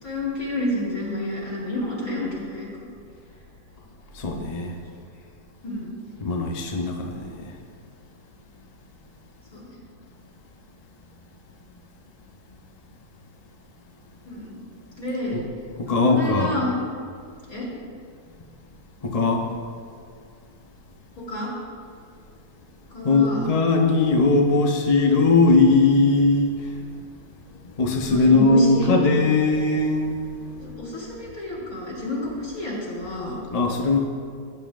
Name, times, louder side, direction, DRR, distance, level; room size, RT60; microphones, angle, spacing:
voice 1, 0.0-2.7 5.6-5.9 9.5-9.8 14.3-14.6 15.0-15.4 15.9-16.7 17.5-17.7 21.2-21.5 22.9-23.5 27.8-28.9 30.6-33.4, left 1 dB, 55° left, -6 dB, 3.7 m, -29 dB
voice 2, 4.1-4.7 6.2-7.5 15.3-15.4 15.8-16.5 19.0-19.4 23.0-26.9 27.6-30.2 33.5-34.1, left 3 dB, 35° left, 1 dB, 0.6 m, -20 dB
17.5 x 9.2 x 2.5 m, 2.2 s
omnidirectional pair, 1.9 m